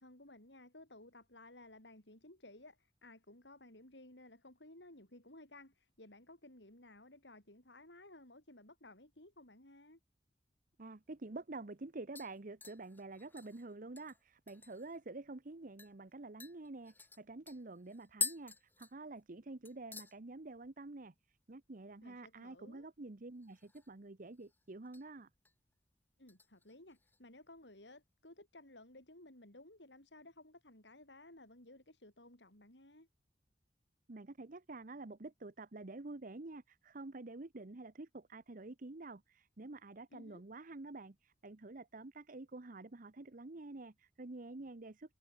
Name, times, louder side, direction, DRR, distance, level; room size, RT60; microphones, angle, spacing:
voice 1, 0.0-10.0 22.0-22.9 26.2-33.1 40.1-40.4, left 2 dB, 70° left, 7.3 m, -57 dB
voice 2, 10.8-21.1 21.5-25.3 34.1-45.1, right 2 dB, 50° right, 0.9 m, -48 dB
sound 1, 11.1-11.2 11.5-11.8 12.2-15.0 15.3-15.4 15.8-15.9 16.4-19.4 19.6-20.2 20.5-20.9 21.2-21.3 23.4-24.0 24.3-25.0 25.4-25.7 26.3-27.2 27.5-27.6, left 4 dB, 10° left, 0.5 m, -46 dB
head